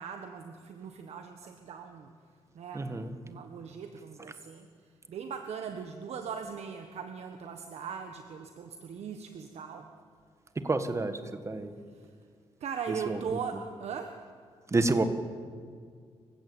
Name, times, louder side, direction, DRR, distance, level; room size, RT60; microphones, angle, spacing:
voice 1, 0.0-2.1 2.5-2.9 3.2-9.9 11.9-12.1 12.6-14.2, right 6 dB, 75° right, 6 dB, 1.4 m, -40 dB
voice 2, 2.7-3.2 10.6-11.8 13.1-13.2 14.7-15.0, right 2 dB, 25° right, 9 dB, 1.7 m, -29 dB
26.5 x 15.5 x 8.7 m, 2.1 s
cardioid pair, 115°, 11 cm